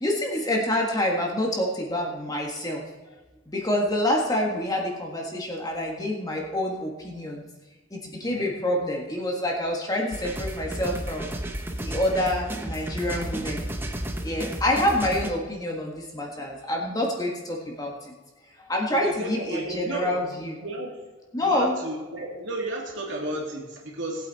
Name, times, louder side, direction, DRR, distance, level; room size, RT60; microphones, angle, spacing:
voice 1, 0.0-2.8 3.5-7.4 7.9-11.3 11.8-13.6 14.2-18.1 18.6-20.6 21.3-21.7, left 1 dB, 20° left, -1 dB, 1.7 m, -27 dB
sound 1, 10.1-15.3, right 1 dB, 10° right, 0.9 m, -32 dB
voice 2, 18.9-20.2 20.6-21.0 21.4-24.3, right 1 dB, 65° right, -1 dB, 2.9 m, -33 dB
18.5 x 8.4 x 4.2 m, 1.2 s
head